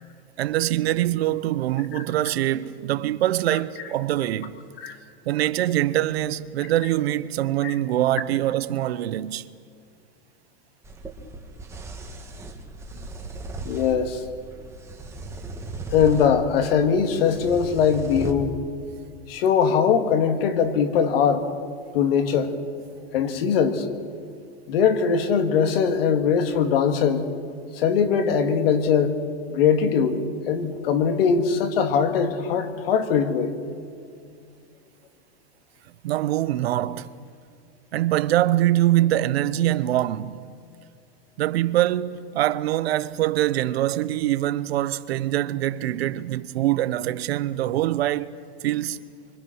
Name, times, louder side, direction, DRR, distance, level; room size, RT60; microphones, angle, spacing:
voice 1, 0.4-4.6 5.3-9.5 36.0-37.1 37.9-40.4 41.4-48.3 48.6-49.0, right 14 dB, 85° right, 0.9 m, -24 dB
sound 1, 10.8-18.3, right 2 dB, 10° right, 1.6 m, -37 dB
voice 2, 13.6-14.2 15.9-18.5 19.3-21.4 21.9-22.5 23.1-23.9 24.7-27.2 27.7-29.2 29.5-30.2 30.5-33.5, left 7 dB, 70° left, 2.3 m, -21 dB
25.0 x 24.5 x 6.4 m
supercardioid pair, 160°, 30 cm